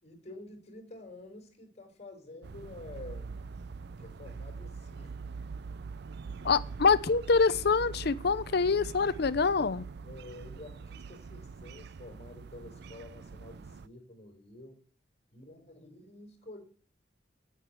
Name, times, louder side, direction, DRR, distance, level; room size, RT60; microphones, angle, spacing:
voice 1, 0.0-3.4 4.0-5.3 6.2-6.7 10.0-14.8 15.3-16.6, left 2 dB, 35° left, 4.4 m, -49 dB
sound 1, 2.4-13.9, right 4 dB, 60° right, 0.5 m, -43 dB
voice 2, 6.4-9.8, left 4 dB, 60° left, 0.6 m, -25 dB
9.9 x 8.4 x 7.9 m
head